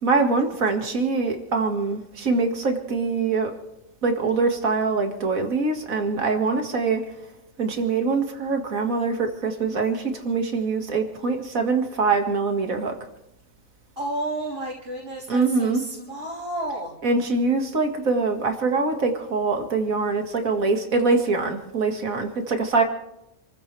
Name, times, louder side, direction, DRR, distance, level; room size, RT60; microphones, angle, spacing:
voice 1, 0.0-3.5 4.0-7.0 7.6-12.9 15.3-15.8 17.0-22.8, right 4 dB, 75° right, 4 dB, 2.4 m, -23 dB
voice 2, 14.0-16.9, right 1 dB, 55° right, -7 dB, 4.1 m, -31 dB
28.0 x 15.0 x 3.4 m, 0.84 s
omnidirectional pair, 1.4 m